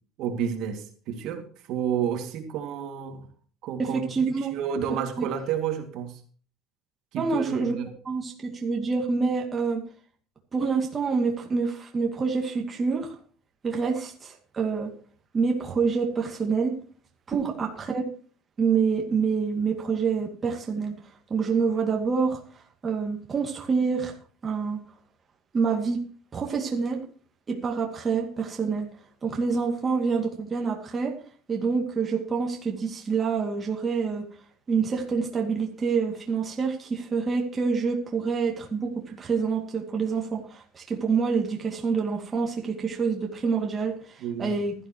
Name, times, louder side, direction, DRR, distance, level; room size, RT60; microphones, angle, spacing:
voice 1, 0.2-3.3 3.6-4.0 4.4-6.2 7.1-7.9 44.2-44.5, right 8 dB, 55° right, 5 dB, 2.2 m, -31 dB
voice 2, 3.8-4.5 5.2-5.3 7.2-7.8 8.0-9.8 10.5-13.2 13.6-14.9 15.3-16.7 17.3-18.0 18.6-20.9 21.3-22.4 22.8-24.2 24.4-24.8 25.5-26.0 26.3-27.0 27.5-28.9 29.2-31.2 31.5-34.3 34.7-44.7, right 5 dB, 20° right, 1 dB, 2.3 m, -27 dB
16.0 x 13.0 x 3.0 m, 0.42 s
cardioid pair, 165°, 0 cm